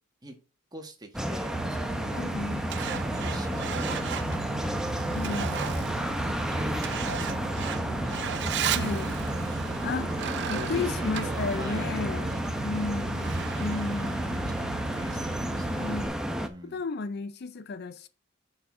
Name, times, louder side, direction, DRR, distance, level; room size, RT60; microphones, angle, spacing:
voice 1, 0.7-2.3 2.8-4.5 6.5-8.0 8.8-9.8 10.5-13.1 14.5-15.9 16.5-16.8, right 1 dB, 20° right, 1.2 m, -43 dB
sound 1, 1.1-16.5, equal, 5° right, 0.6 m, -32 dB
Truck, 1.5-16.1, right 6 dB, 55° right, 0.5 m, -35 dB
voice 2, 2.2-2.6 5.1-5.6 8.7-9.2 9.8-14.6 15.8-16.1 16.6-18.1, left 4 dB, 50° left, 0.5 m, -34 dB
6.8 x 4.0 x 5.8 m
head